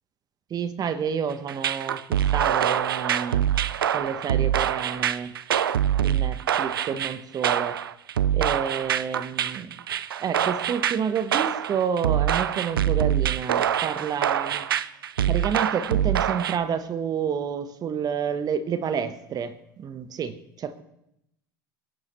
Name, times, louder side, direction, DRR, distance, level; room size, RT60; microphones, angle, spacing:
voice 1, 0.5-2.0 2.3-3.4 3.9-5.3 6.0-7.8 8.3-9.7 10.2-14.6 15.3-20.8, right 7 dB, 35° right, 12 dB, 1.1 m, -29 dB
sound 1, 1.5-16.6, right 10 dB, 85° right, 0.5 m, -25 dB
26.5 x 11.0 x 3.1 m, 0.84 s
hypercardioid pair, 85°, 12 cm